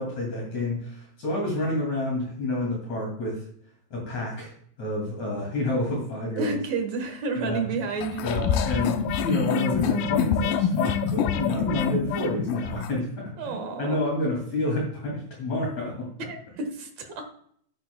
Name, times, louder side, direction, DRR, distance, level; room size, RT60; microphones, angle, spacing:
voice 1, 0.0-3.4 3.9-4.5 4.8-6.6 7.4-7.6 8.2-16.1, left 1 dB, 45° left, -3 dB, 3.5 m, -29 dB
voice 2, 6.4-8.7 13.4-14.0 16.3-17.3, right 4 dB, 55° right, 5 dB, 2.2 m, -31 dB
sound 1, 8.0-12.9, left 7 dB, 75° left, 2.1 m, -26 dB
11.5 x 10.5 x 2.2 m, 0.62 s
omnidirectional pair, 4.5 m